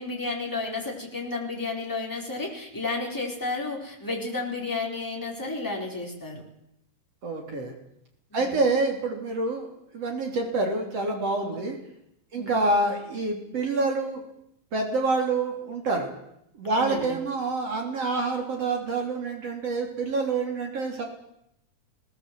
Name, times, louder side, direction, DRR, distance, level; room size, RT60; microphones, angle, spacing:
voice 1, 0.0-6.4 8.3-8.6 12.4-12.5 16.7-17.2, left 3 dB, 5° left, -1 dB, 4.4 m, -32 dB
voice 2, 7.2-7.7 8.3-11.8 12.3-14.2 14.7-16.1 16.6-21.1, right 3 dB, 50° right, 2 dB, 4.3 m, -27 dB
20.5 x 19.0 x 7.8 m, 0.77 s
omnidirectional pair, 3.6 m